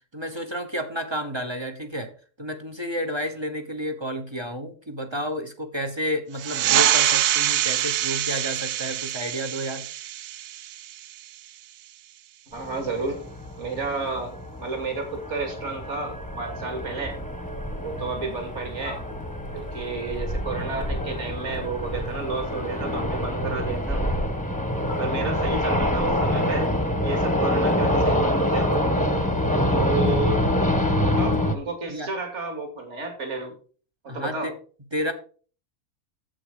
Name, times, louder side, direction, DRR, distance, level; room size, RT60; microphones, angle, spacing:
voice 1, 0.1-2.1 2.4-9.9 31.9-32.1 34.1-34.5 34.9-35.1, equal, 20° right, 6 dB, 0.9 m, -31 dB
sound 1, 6.4-11.5, right 12 dB, 80° right, 1.2 m, -25 dB
sound 2, 12.5-31.5, left 1 dB, 5° left, 1.1 m, -26 dB
voice 2, 12.5-13.2 13.6-17.2 17.8-19.0 19.5-24.0 25.0-26.7 27.0-28.7 29.7-30.4 31.0-33.5 34.0-34.5, right 3 dB, 50° right, 4 dB, 2.8 m, -31 dB
8.9 x 7.7 x 5.0 m, 0.40 s
omnidirectional pair, 1.6 m